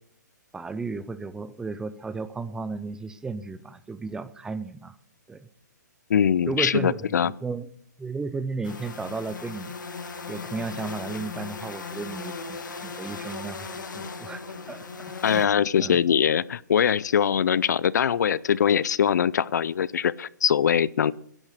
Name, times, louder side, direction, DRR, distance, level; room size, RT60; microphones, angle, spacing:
voice 1, 0.5-5.0 5.3-5.5 6.5-7.7 8.0-9.7 10.3-16.0, right 4 dB, 5° right, 14 dB, 0.5 m, -34 dB
voice 2, 6.1-7.3 15.2-21.1, left 8 dB, 65° left, 22 dB, 0.5 m, -22 dB
sound 1, 8.6-15.5, left 4 dB, 85° left, 2.3 m, -37 dB
13.5 x 11.0 x 6.6 m, 0.65 s
hypercardioid pair, 145°, 10 cm